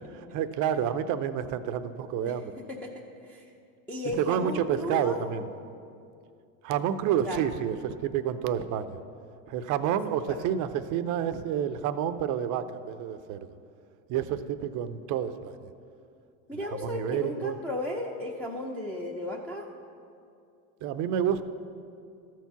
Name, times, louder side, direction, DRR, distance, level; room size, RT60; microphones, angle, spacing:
voice 1, 0.3-2.5 4.1-5.5 6.6-9.0 9.5-13.5 14.1-15.6 16.7-17.6 20.8-21.4, right 9 dB, 40° right, 11 dB, 0.6 m, -29 dB
voice 2, 2.7-3.4 3.9-5.2 7.2-7.4 10.1-10.4 16.5-19.7, left 1 dB, 5° left, -1 dB, 0.6 m, -35 dB
13.0 x 4.6 x 7.0 m, 2.5 s
hypercardioid pair, 105°, 46 cm